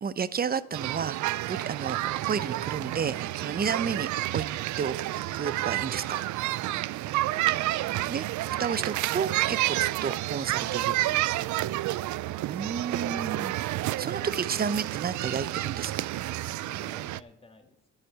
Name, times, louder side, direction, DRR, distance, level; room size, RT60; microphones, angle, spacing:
voice 1, 0.0-4.4 4.8-4.9 5.3-6.2 8.1-8.3 8.6-10.9 12.5-13.6 13.8-16.1, right 6 dB, 30° right, 16 dB, 0.7 m, -31 dB
sound 1, 0.7-17.2, right 16 dB, 75° right, 0.4 m, -30 dB
voice 2, 6.6-7.4 11.0-11.8 16.5-17.9, left 2 dB, 20° left, 6 dB, 1.8 m, -52 dB
10.0 x 8.2 x 7.5 m, 0.84 s
cardioid pair, 90°, 30 cm